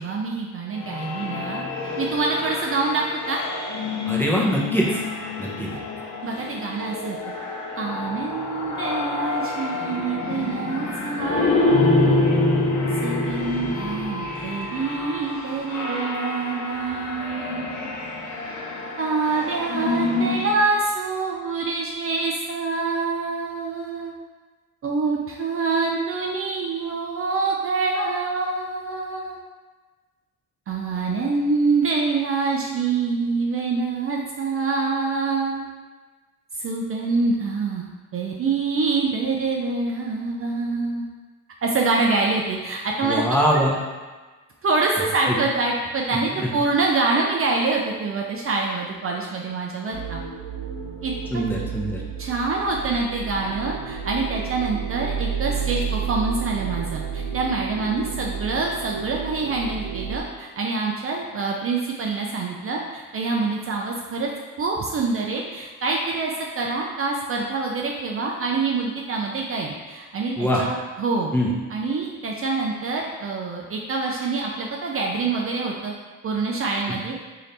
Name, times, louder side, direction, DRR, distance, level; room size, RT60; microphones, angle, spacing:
voice 1, 0.0-1.6 2.0-3.4 6.2-7.2 7.8-12.4 13.0-17.9 19.0-24.1 24.8-29.4 30.7-35.7 36.5-37.9 38.1-41.1 41.6-43.3 43.5-43.6 44.6-50.2 51.0-51.4 52.2-64.3 64.6-71.3 71.7-75.9 76.2-77.2, right 3 dB, 40° right, -1 dB, 0.5 m, -26 dB
sound 1, 0.8-20.6, left 2 dB, 55° left, 0.9 m, -27 dB
voice 2, 4.1-5.0 5.4-5.8 43.0-43.7 46.4-46.5 51.3-52.0 70.4-70.6 71.3-71.5, equal, 5° left, -4 dB, 0.8 m, -22 dB
sound 2, 49.9-60.2, right 6 dB, 90° right, 0.7 m, -31 dB
3.2 x 2.8 x 4.0 m, 1.3 s
cardioid pair, 80°, 34 cm